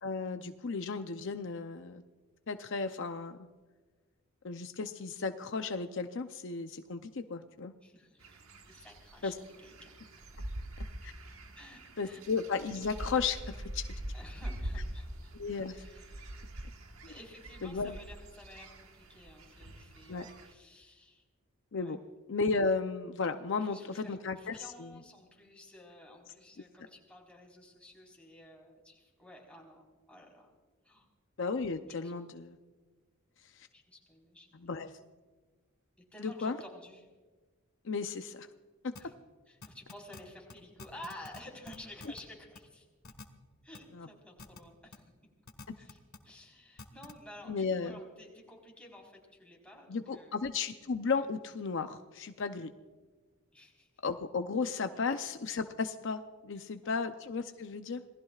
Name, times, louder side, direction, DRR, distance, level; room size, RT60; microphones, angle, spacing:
voice 1, 0.0-2.0 2.5-3.5 4.4-7.7 9.2-9.3 11.0-11.1 12.0-13.8 15.4-15.8 17.6-17.9 20.1-20.3 21.7-22.0 22.3-25.0 31.4-32.6 33.5-33.7 34.5-34.9 36.2-36.6 37.8-38.5 38.8-38.9 43.9-44.1 47.5-48.0 49.9-52.7 54.0-58.0, left 4 dB, 60° left, 7 dB, 0.6 m, -34 dB
voice 2, 7.8-8.4 8.6-9.9 11.5-12.2 14.1-15.3 15.7-16.4 17.1-21.2 21.7-21.9 23.5-30.5 30.8-31.1 31.9-32.1 33.7-34.7 36.1-37.1 39.0-39.1 39.5-42.9 43.6-45.0 45.8-50.4 53.5-53.9 55.0-55.1 56.5-57.0, left 1 dB, 5° left, -2 dB, 4.2 m, -53 dB
sound 1, 8.2-20.5, right 1 dB, 85° right, 1.5 m, -44 dB
sound 2, 39.0-39.1 39.6-40.2 40.5-40.6 40.8-41.4 41.7-42.2 42.6-42.7 43.0-43.2 43.7-43.8 44.4-44.6 44.9-45.0 45.5-46.2 46.8-47.1, left 3 dB, 90° left, 1.5 m, -47 dB
27.5 x 19.0 x 2.4 m, 1.3 s
head